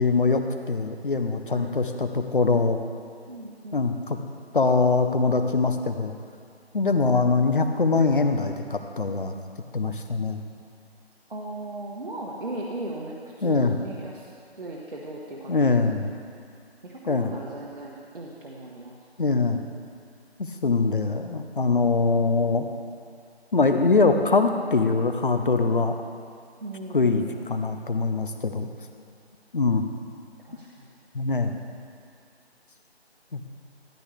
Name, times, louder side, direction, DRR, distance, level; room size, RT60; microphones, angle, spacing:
voice 1, 0.0-2.8 3.7-4.2 4.5-6.2 6.7-9.3 9.7-10.4 13.4-13.8 15.5-16.1 17.1-17.3 19.2-19.6 20.4-22.7 23.5-26.0 26.9-28.7 29.5-29.9 31.1-31.5 33.3-33.4, left 4 dB, 50° left, 7 dB, 0.8 m, -23 dB
voice 2, 3.3-3.8 11.3-14.3 14.6-15.9 16.8-18.9 26.6-27.7 30.5-30.9, right 2 dB, 55° right, -4 dB, 1.4 m, -37 dB
13.5 x 12.0 x 3.3 m, 2.2 s
figure-of-eight pair, 170°, 33 cm